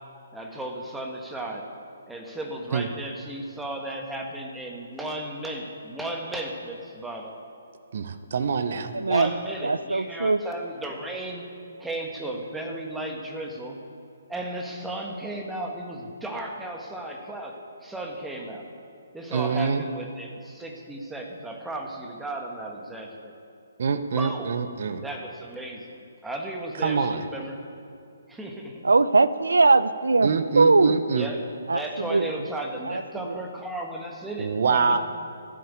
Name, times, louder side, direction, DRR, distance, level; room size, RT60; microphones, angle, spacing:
voice 1, 0.3-1.7 2.1-7.4 8.9-11.5 11.8-13.8 14.3-17.5 17.8-18.7 19.1-23.3 24.1-24.6 25.0-26.0 26.2-27.6 28.3-28.9 31.2-31.4 31.7-35.0, right 1 dB, 5° right, 1 dB, 1.6 m, -35 dB
voice 2, 7.9-8.9 19.3-19.8 23.8-25.0 26.8-27.2 30.2-31.3 34.4-35.0, right 5 dB, 60° right, 11 dB, 0.9 m, -25 dB
voice 3, 8.9-9.3 9.6-10.4 28.8-30.3 30.5-31.0 31.7-32.3 32.9-33.0, right 3 dB, 90° right, 15 dB, 0.6 m, -20 dB
14.5 x 8.8 x 8.6 m, 2.6 s
hypercardioid pair, 145°, 0 cm